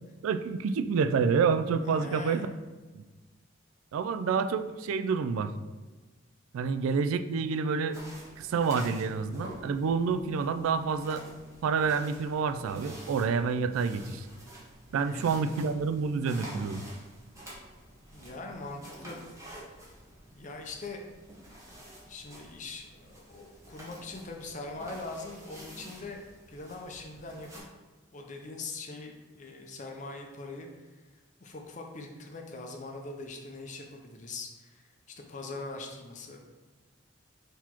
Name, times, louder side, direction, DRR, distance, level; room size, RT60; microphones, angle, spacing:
voice 1, 0.2-2.5 2.9-3.0 3.9-5.5 6.5-8.0 8.4-11.2 11.6-14.3 14.9-16.8, right 5 dB, 90° right, 10 dB, 0.3 m, -28 dB
voice 2, 1.8-2.5 14.9-15.4 18.1-19.2 20.3-21.1 22.0-27.6 28.1-31.1 31.4-34.9 35.3-36.4, left 3 dB, 35° left, 2 dB, 0.5 m, -42 dB
sound 1, 7.9-27.6, right 1 dB, 15° right, 1.0 m, -49 dB
4.0 x 3.0 x 4.3 m, 1.3 s
head